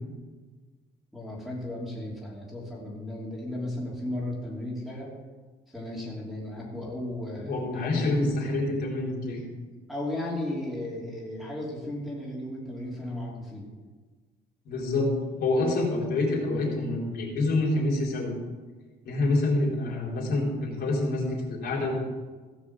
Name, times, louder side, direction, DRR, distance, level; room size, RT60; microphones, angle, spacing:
voice 1, 1.1-5.1 5.7-8.6 9.9-13.7 15.3-15.5 19.2-19.4, left 1 dB, ahead, -4 dB, 3.0 m, -35 dB
voice 2, 7.4-9.4 14.7-15.1 15.4-18.3 19.0-22.0, left 2 dB, 70° left, -2 dB, 3.9 m, -27 dB
16.0 x 6.2 x 7.5 m, 1.4 s
cardioid pair, 150°, 17 cm